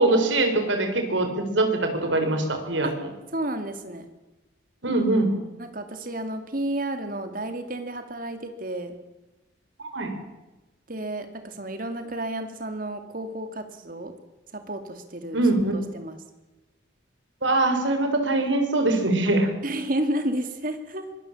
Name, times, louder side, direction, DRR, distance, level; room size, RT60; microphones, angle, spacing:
voice 1, 0.0-2.9 4.8-5.4 9.9-10.1 15.3-15.7 17.4-19.5, right 2 dB, 75° right, 6 dB, 4.2 m, -22 dB
voice 2, 3.3-4.1 5.6-9.0 10.9-14.1 14.5-15.4 15.7-16.2 19.6-21.1, right 1 dB, 45° right, 8 dB, 2.5 m, -31 dB
23.5 x 19.0 x 7.3 m, 1.1 s
head